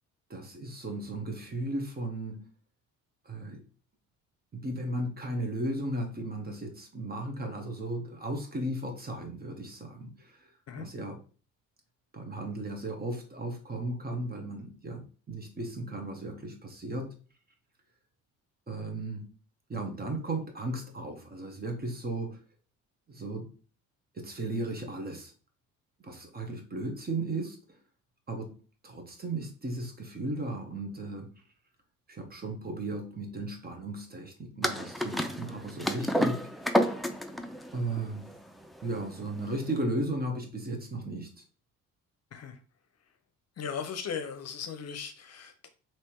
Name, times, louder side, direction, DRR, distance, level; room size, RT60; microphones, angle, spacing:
voice 1, 0.3-2.4 3.2-3.6 4.5-10.5 10.8-11.2 12.1-17.1 18.7-19.3 19.7-22.4 23.1-23.5 24.1-25.3 26.0-27.8 28.3-28.5 28.8-31.3 32.1-36.9 37.7-38.3 38.8-41.4, right 2 dB, 30° right, 3 dB, 1.2 m, -35 dB
sound 1, 34.6-39.7, equal, ahead, 0.4 m, -30 dB
voice 2, 43.6-45.7, left 7 dB, 50° left, 8 dB, 0.7 m, -37 dB
3.3 x 3.0 x 4.5 m, 0.37 s
cardioid pair, 95°, 32 cm